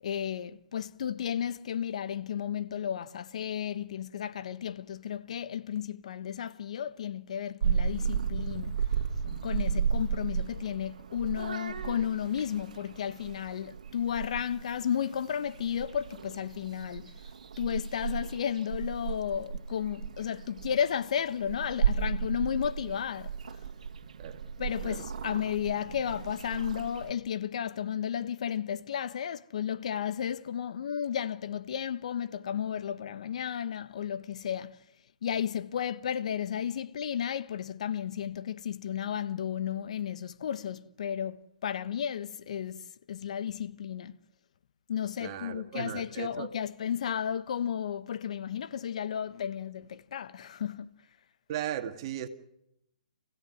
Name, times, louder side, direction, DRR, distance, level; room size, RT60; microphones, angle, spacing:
voice 1, 0.0-8.8 9.2-17.2 17.6-23.6 24.6-34.8 35.2-44.2 44.9-51.0, left 9 dB, 55° left, 1.2 m, -33 dB
Purr / Meow, 7.6-27.1, right 7 dB, 65° right, 2.0 m, -34 dB
voice 2, 24.8-25.3 45.2-46.5 51.5-52.3, right 11 dB, 40° right, 2.2 m, -37 dB
29.5 x 16.5 x 9.5 m
hypercardioid pair, 140°, 4 cm